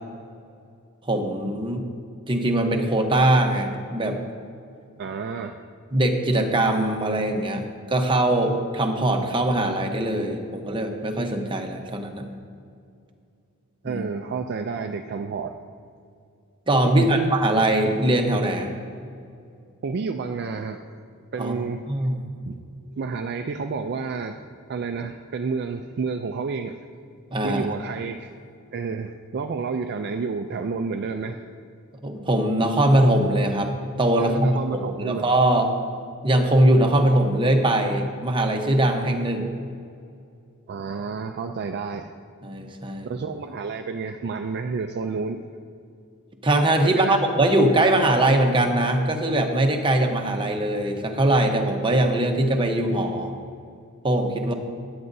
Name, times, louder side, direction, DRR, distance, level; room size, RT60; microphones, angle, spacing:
voice 1, 1.0-1.8 2.3-4.2 5.9-12.3 13.8-14.1 16.7-18.7 21.4-21.5 21.9-22.2 27.3-27.7 32.0-35.7 36.2-39.5 42.4-43.1 46.4-53.3 54.0-54.5, right 1 dB, 20° right, 3 dB, 0.9 m, -21 dB
voice 2, 5.0-5.6 13.8-15.5 16.8-17.3 19.8-20.8 21.3-21.9 22.5-22.6 23.0-24.4 24.7-26.8 27.4-28.3 28.7-31.4 34.2-35.3 40.7-42.1 43.0-45.5 46.8-47.2, right 4 dB, 45° right, 6 dB, 0.4 m, -30 dB
15.5 x 9.5 x 2.7 m, 2.4 s
head